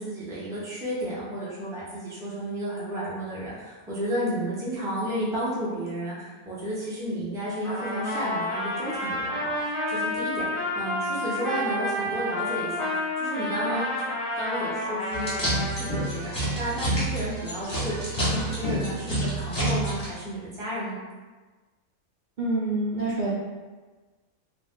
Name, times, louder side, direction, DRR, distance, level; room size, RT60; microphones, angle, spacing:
voice 1, 0.0-21.0, equal, 5° right, -8 dB, 0.4 m, -32 dB
Trumpet, 7.6-16.1, left 1 dB, 50° left, 0.8 m, -30 dB
sound 1, 15.1-20.1, right 1 dB, 20° left, 1.0 m, -28 dB
voice 2, 22.4-23.3, right 2 dB, 75° right, -8 dB, 0.4 m, -26 dB
2.5 x 2.3 x 3.5 m, 1.3 s
omnidirectional pair, 1.4 m